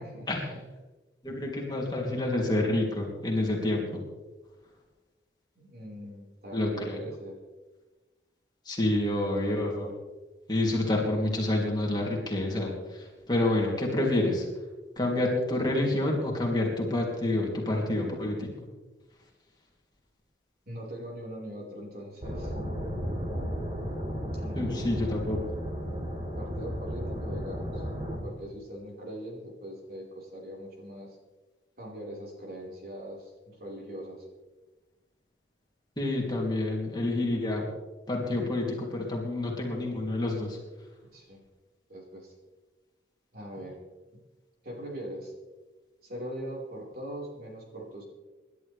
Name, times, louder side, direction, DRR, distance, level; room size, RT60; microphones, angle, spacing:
voice 1, 0.1-0.6 5.5-7.4 8.8-9.1 20.7-22.5 24.3-25.0 26.3-27.8 28.2-31.2 31.8-34.3 41.1-41.4 41.9-42.3 43.3-43.7 44.6-45.3 46.0-48.0, equal, 55° right, -3 dB, 5.0 m, -41 dB
voice 2, 1.2-4.0 6.5-7.0 8.6-9.9 10.5-14.5 15.0-18.5 24.5-25.4 36.0-37.7 38.1-40.6, left 1 dB, 25° left, -2 dB, 3.1 m, -28 dB
sound 1, 22.2-28.2, equal, 35° right, 3.6 m, -34 dB
26.5 x 12.0 x 3.5 m, 1.2 s
head